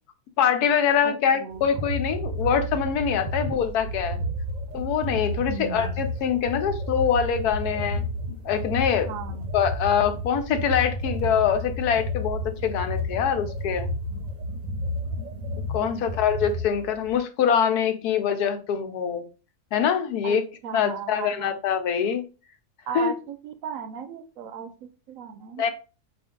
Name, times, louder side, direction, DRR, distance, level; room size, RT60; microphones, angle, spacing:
voice 1, 0.4-4.2 4.7-8.0 8.4-9.1 9.5-13.9 15.7-19.2 19.7-20.4 20.7-22.2 22.9-23.1 25.6-25.7, left 7 dB, 80° left, 8 dB, 1.2 m, -24 dB
voice 2, 1.0-1.6 5.5-6.0 9.1-9.5 15.8-16.1 20.2-21.6 22.9-25.7, right 6 dB, 70° right, 9 dB, 0.9 m, -36 dB
sound 1, 1.5-17.2, left 1 dB, 40° right, 0.7 m, -31 dB
5.5 x 2.6 x 3.6 m, 0.33 s
omnidirectional pair, 1.6 m